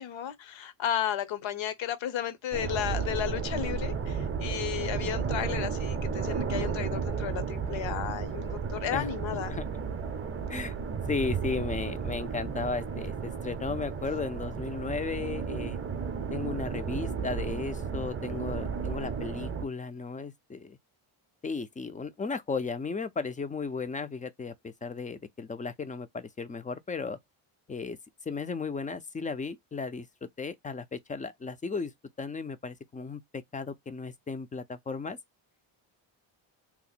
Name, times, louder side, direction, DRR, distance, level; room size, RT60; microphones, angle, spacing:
voice 1, 0.0-9.6, left 10 dB, 65° left, 0.8 m, -33 dB
sound 1, 2.5-19.7, right 6 dB, 25° right, 0.6 m, -33 dB
voice 2, 11.1-15.8 16.3-20.8 21.4-27.2 27.7-28.0 28.3-31.9 32.2-35.2, left 4 dB, 20° left, 0.3 m, -35 dB
2.9 x 2.1 x 4.1 m
cardioid pair, 90°, 50 cm